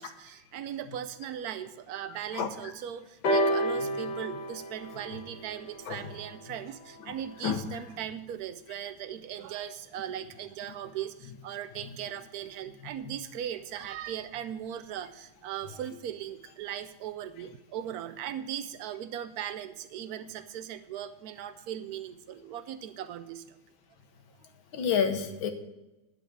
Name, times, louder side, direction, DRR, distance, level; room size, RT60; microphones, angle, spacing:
voice 1, 0.0-23.6, right 10 dB, 90° right, 11 dB, 0.8 m, -38 dB
sound 1, 3.2-7.1 8.0-8.1, equal, 60° left, 2.0 m, -31 dB
voice 2, 24.7-25.5, left 7 dB, 80° left, 7 dB, 1.8 m, -29 dB
11.5 x 4.8 x 7.8 m, 1.0 s
omnidirectional pair, 2.2 m